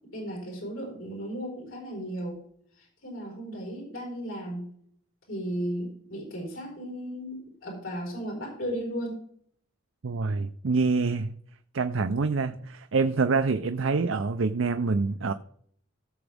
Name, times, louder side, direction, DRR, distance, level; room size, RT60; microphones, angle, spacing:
voice 1, 0.1-2.4 2.8-4.7 5.3-9.2, equal, 80° left, -2 dB, 4.7 m, -35 dB
voice 2, 10.0-11.3 11.7-15.3, right 4 dB, 75° right, 8 dB, 0.6 m, -26 dB
17.0 x 7.1 x 3.5 m, 0.63 s
head